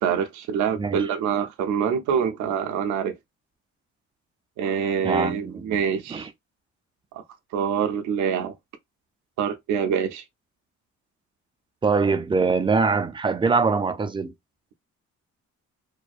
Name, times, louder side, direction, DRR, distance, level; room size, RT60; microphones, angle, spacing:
voice 1, 0.0-3.2 4.6-6.3 7.1-7.2 7.5-8.5 9.4-10.2, right 7 dB, 70° right, 0.5 m, -25 dB
voice 2, 5.0-5.8 6.1-6.3 11.8-14.3, right 4 dB, 15° right, 0.3 m, -23 dB
2.6 x 2.1 x 2.3 m
cardioid pair, 90°, 30 cm